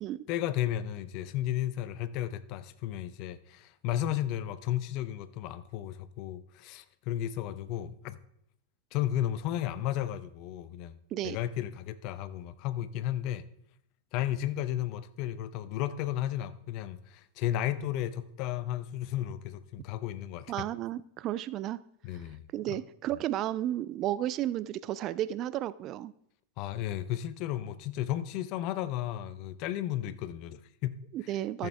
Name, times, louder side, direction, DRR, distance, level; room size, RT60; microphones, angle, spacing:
voice 1, 0.3-8.2 8.9-13.4 14.1-20.7 22.0-22.8 26.6-31.4 31.6-31.7, left 12 dB, 40° left, 0.6 m, -34 dB
voice 2, 20.5-21.8 22.5-26.1 31.1-31.7, right 13 dB, 35° right, 0.3 m, -33 dB
14.0 x 7.2 x 3.4 m
figure-of-eight pair, 90°, 0 cm